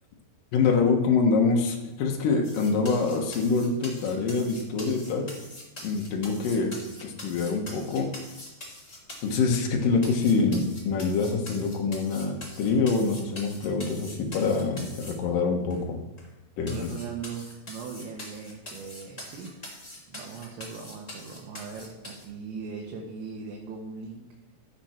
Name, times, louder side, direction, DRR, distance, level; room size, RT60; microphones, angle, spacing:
voice 1, 0.5-5.3 5.8-8.1 9.2-16.0 16.6-16.7, left 4 dB, 65° left, 1 dB, 2.4 m, -25 dB
sound 1, 2.4-9.7 10.0-15.1 15.7-15.8 16.2-16.3 16.7-22.2, left 1 dB, 15° left, 1.8 m, -43 dB
voice 2, 16.7-19.6 20.1-24.3, right 5 dB, 85° right, -1 dB, 3.5 m, -39 dB
13.0 x 7.0 x 4.4 m, 1.0 s
omnidirectional pair, 5.1 m